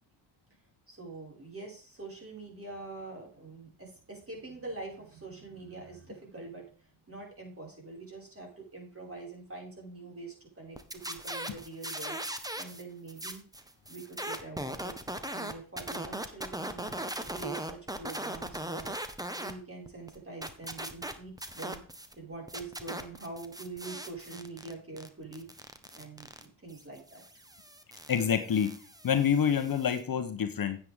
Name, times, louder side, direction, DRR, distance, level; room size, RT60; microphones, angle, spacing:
voice 1, 0.9-12.2 12.6-13.4 13.9-14.9 15.3-19.0 19.3-21.8 22.2-25.7 25.9-27.2, right 3 dB, 30° right, -1 dB, 5.6 m, -44 dB
sound 1, 10.8-12.8 13.1-19.5 19.9-22.1 22.5-30.0, right 1 dB, 10° right, 1.2 m, -39 dB
voice 2, 28.1-28.7 29.0-30.8, left 8 dB, 50° left, 8 dB, 1.1 m, -27 dB
9.6 x 8.6 x 3.6 m, 0.40 s
cardioid pair, 70°, 46 cm